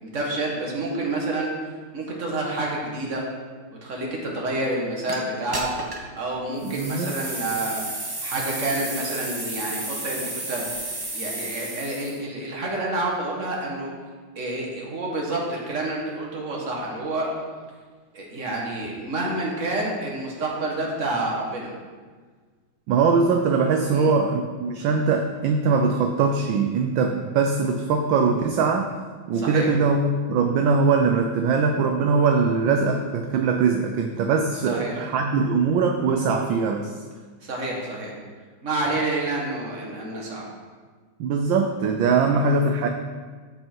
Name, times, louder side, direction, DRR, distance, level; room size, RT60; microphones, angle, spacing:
voice 1, 0.0-1.5 1.9-3.3 3.8-5.8 6.2-7.8 8.2-10.7 11.1-13.9 14.4-17.4 18.1-21.7 23.9-24.1 29.3-29.7 34.7-35.0 37.4-38.1 38.6-40.5 42.4-42.6, right 2 dB, 35° right, -2 dB, 2.0 m, -28 dB
sound 1, 5.1-5.2 5.5-6.1 6.6-12.2, right 2 dB, 20° right, 0.5 m, -32 dB
voice 2, 6.6-7.1 22.9-28.9 29.3-36.9 41.2-42.9, right 4 dB, 70° right, 4 dB, 1.3 m, -21 dB
14.0 x 5.5 x 4.6 m, 1.5 s
omnidirectional pair, 2.3 m